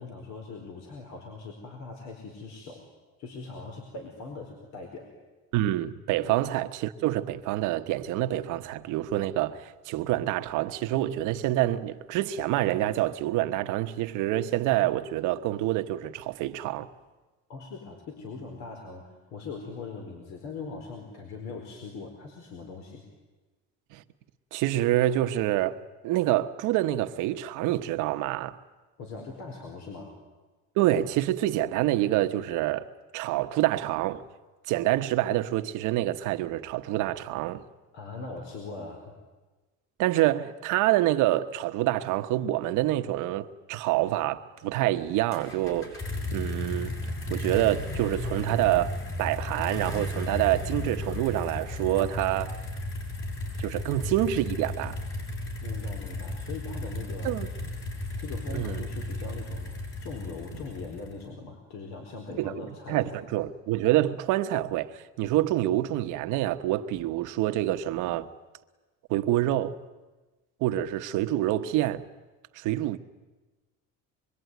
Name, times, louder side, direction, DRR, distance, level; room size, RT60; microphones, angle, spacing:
voice 1, 0.0-2.8 3.2-5.1 6.2-6.4 17.5-23.0 29.0-30.1 37.9-39.0 55.6-57.3 58.2-59.7 60.0-63.2, left 4 dB, 60° left, 4.6 m, -41 dB
voice 2, 5.5-16.9 23.9-24.0 24.5-28.6 30.8-34.2 34.7-37.6 40.0-46.9 47.3-52.6 53.6-55.0 57.2-57.5 58.5-58.8 62.4-62.5 62.9-68.3 69.1-69.8 70.6-72.0 72.5-73.0, right 14 dB, 75° right, 1.3 m, -27 dB
sound 1, 45.3-61.3, left 1 dB, 40° left, 6.9 m, -34 dB
25.0 x 23.5 x 9.5 m
cardioid pair, 130°, 31 cm